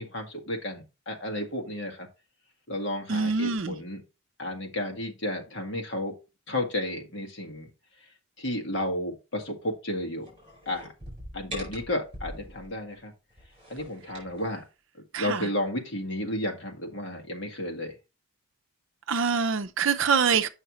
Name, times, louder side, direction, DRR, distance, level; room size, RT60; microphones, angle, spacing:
voice 1, 0.0-2.1 2.7-4.0 4.4-6.1 6.5-7.7 8.4-10.3 10.6-10.9 11.3-13.1 13.7-14.6 15.2-17.9, left 1 dB, 55° left, 1.6 m, -32 dB
voice 2, 3.1-3.7 15.1-15.5 19.1-20.5, right 5 dB, 60° right, 0.6 m, -25 dB
sound 1, 10.2-12.7 13.3-14.5, equal, 25° right, 4.8 m, -42 dB
8.3 x 5.7 x 3.0 m
head